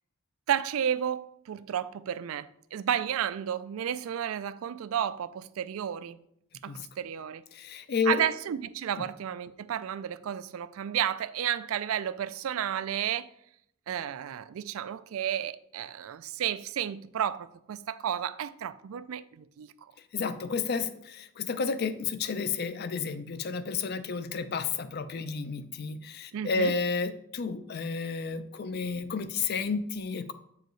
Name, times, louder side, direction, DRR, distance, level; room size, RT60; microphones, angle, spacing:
voice 1, 0.5-6.2 6.6-7.4 8.1-13.3 13.9-19.9 26.3-26.7, right 9 dB, 75° right, 0.3 m, -32 dB
voice 2, 7.5-8.2 20.1-30.3, left 5 dB, 50° left, 0.4 m, -31 dB
7.7 x 4.7 x 3.1 m
head